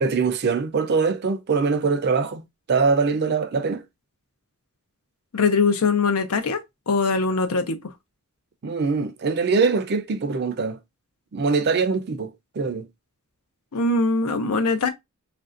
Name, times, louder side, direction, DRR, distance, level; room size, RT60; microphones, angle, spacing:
voice 1, 0.0-2.4 2.7-3.8 8.6-10.8 11.3-12.9, right 4 dB, 50° right, 0.5 m, -23 dB
voice 2, 5.3-6.6 6.9-7.8 13.7-14.9, left 4 dB, 85° left, 0.6 m, -21 dB
3.1 x 2.5 x 2.4 m
head